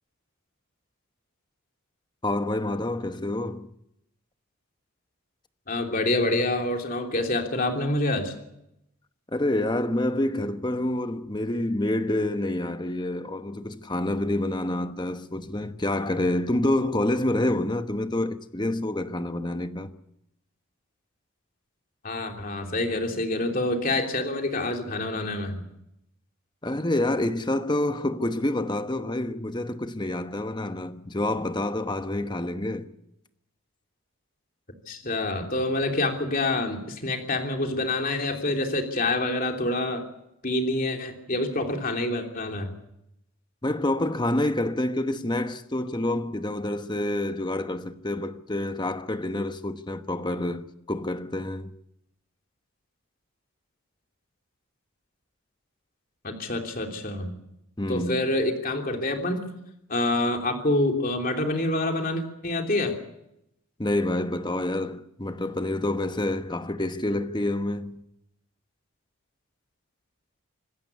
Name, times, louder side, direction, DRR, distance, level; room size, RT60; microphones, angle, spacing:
voice 1, 2.2-3.7 9.3-19.9 26.6-32.9 43.6-51.7 57.8-58.4 63.8-68.0, left 1 dB, 20° left, 1.0 m, -27 dB
voice 2, 5.7-8.3 22.0-25.6 34.9-40.0 40.4-42.7 56.2-57.3 57.9-59.4 59.9-63.0, left 2 dB, 40° left, 3.1 m, -27 dB
26.0 x 14.5 x 8.4 m
head